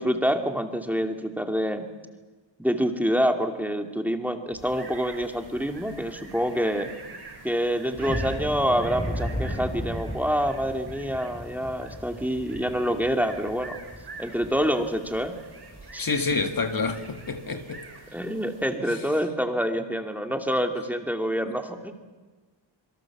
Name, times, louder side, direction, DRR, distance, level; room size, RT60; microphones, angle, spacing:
voice 1, 0.0-1.8 2.6-6.9 7.4-13.8 14.2-15.3 18.1-21.9, equal, 5° right, 2.4 m, -26 dB
sound 1, 4.5-18.8, right 3 dB, 55° right, 7.7 m, -45 dB
sound 2, 8.0-14.8 15.1-15.3 15.7-15.9 16.3-16.5, left 1 dB, 15° left, 3.4 m, -35 dB
voice 2, 16.0-17.8 21.5-21.6, left 4 dB, 45° left, 1.9 m, -28 dB
27.0 x 23.5 x 7.3 m
wide cardioid pair, 120°, 47 cm